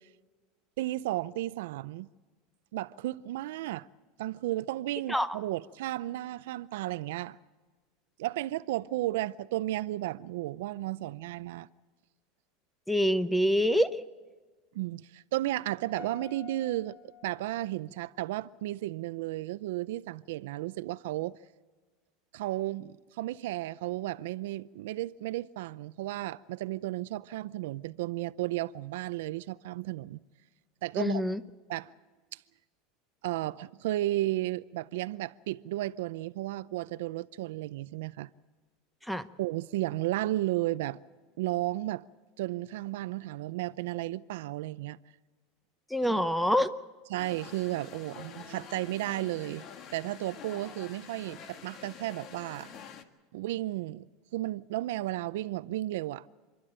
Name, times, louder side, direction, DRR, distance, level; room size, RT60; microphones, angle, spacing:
voice 1, 0.8-2.1 2.7-3.9 4.2-7.4 8.2-11.7 14.7-17.0 17.2-21.4 22.3-30.2 30.8-31.2 31.7-31.9 33.2-38.3 39.4-41.0 41.4-42.0 42.4-45.0 46.0-46.2 47.1-52.8 53.3-54.1 54.3-56.3, right 16 dB, 80° right, 0.5 m, -33 dB
voice 2, 12.9-14.0 31.0-31.4 39.1-39.3 45.9-46.7, equal, ahead, 0.8 m, -26 dB
Piano, 16.0-18.2, left 7 dB, 65° left, 3.0 m, -51 dB
sound 1, 47.2-53.0, left 7 dB, 45° left, 1.6 m, -47 dB
28.5 x 12.0 x 8.8 m
supercardioid pair, 130°, 0 cm